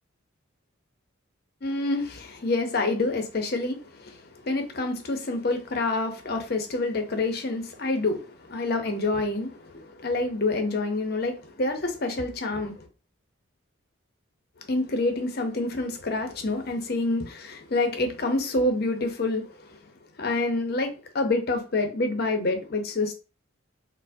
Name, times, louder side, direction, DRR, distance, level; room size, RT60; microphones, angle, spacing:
voice 1, 1.6-12.9 14.7-19.8 20.2-23.1, left 2 dB, 50° left, 0.6 m, -27 dB
4.4 x 2.0 x 2.6 m
head